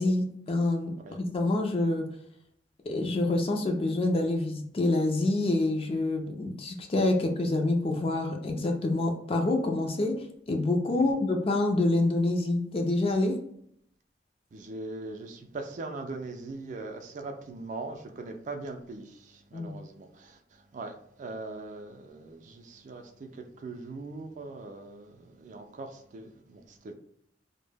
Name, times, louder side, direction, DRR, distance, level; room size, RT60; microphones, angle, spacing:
voice 1, 0.0-2.1 2.9-13.4 19.5-19.8, left 2 dB, 35° left, 0.4 m, -27 dB
voice 2, 14.5-26.9, right 3 dB, 45° right, 0.3 m, -41 dB
2.1 x 2.0 x 3.2 m
head